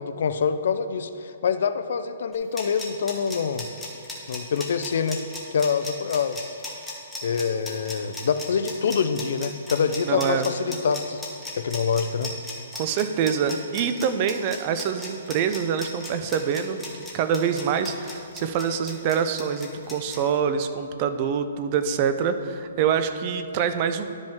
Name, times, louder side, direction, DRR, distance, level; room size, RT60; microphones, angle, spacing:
voice 1, 0.0-3.6 4.3-5.2 5.5-6.6 7.2-11.2 11.6-12.3, left 6 dB, 65° left, 11 dB, 0.4 m, -25 dB
sound 1, 2.3-20.2, left 2 dB, 5° left, 1.0 m, -36 dB
voice 2, 10.0-10.4 12.7-16.8 17.1-24.2, right 7 dB, 30° right, 10 dB, 0.4 m, -25 dB
12.0 x 5.2 x 3.5 m, 2.5 s
hypercardioid pair, 165°, 0 cm